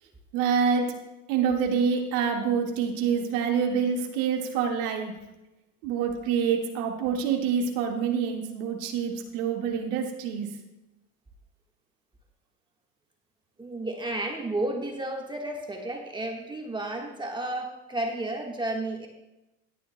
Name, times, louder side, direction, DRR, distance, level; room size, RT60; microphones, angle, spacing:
voice 1, 0.3-0.9 1.3-5.2 5.8-10.5, right 6 dB, 60° right, 2 dB, 1.8 m, -26 dB
voice 2, 13.6-19.1, right 2 dB, 10° right, 1 dB, 1.4 m, -32 dB
17.5 x 9.3 x 2.2 m, 0.98 s
hypercardioid pair, 105°, 45 cm